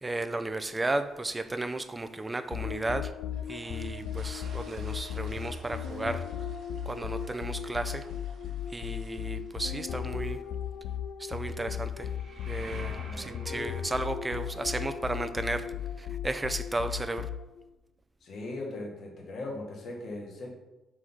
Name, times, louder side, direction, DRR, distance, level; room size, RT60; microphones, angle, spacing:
voice 1, 0.0-3.1 3.5-6.2 6.9-8.1 8.7-10.4 11.2-12.1 12.5-15.7 16.0-17.3, right 2 dB, 20° right, 10 dB, 0.5 m, -34 dB
sound 1, 2.5-17.7, left 8 dB, 80° left, 0.3 m, -36 dB
sound 2, 3.3-10.6, right 4 dB, 70° right, 1.2 m, -55 dB
sound 3, 11.8-17.5, right 3 dB, 50° right, 1.1 m, -52 dB
voice 2, 12.8-13.7 18.2-20.5, left 2 dB, 60° left, -1 dB, 1.8 m, -39 dB
4.9 x 4.1 x 5.9 m, 1.0 s
cardioid pair, 90°, 0 cm